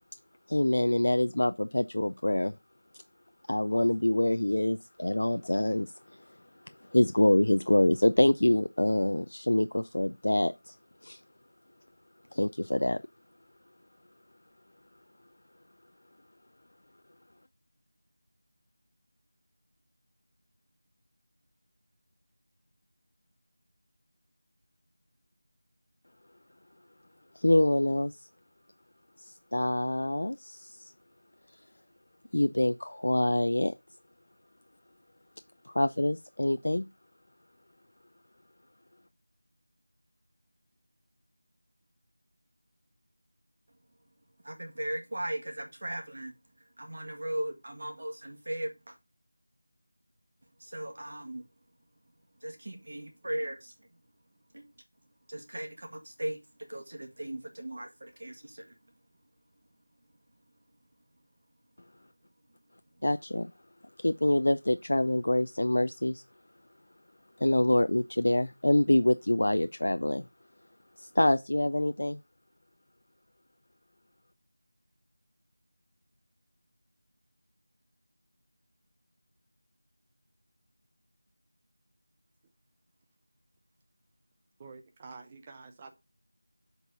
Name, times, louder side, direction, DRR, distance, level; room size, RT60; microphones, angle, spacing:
voice 1, 0.5-2.6 2.9-3.0 3.4-11.2 12.3-13.0 14.9-15.0 27.3-28.3 29.2-30.9 31.5-31.7 32.3-33.8 35.6-36.9 61.8-61.9 63.0-63.5 63.8-66.2 67.4-70.3 70.6-70.7 71.0-72.2, left 1 dB, 70° left, 0.4 m, -26 dB
voice 2, 44.4-46.3 46.8-49.0 50.6-51.5 52.4-53.9 54.5-54.7 55.3-56.4 56.7-58.7, right 1 dB, 40° right, 1.7 m, -37 dB
voice 3, 84.6-85.9, right 4 dB, 10° right, 0.4 m, -48 dB
8.1 x 4.1 x 5.3 m
figure-of-eight pair, 180°, 0 cm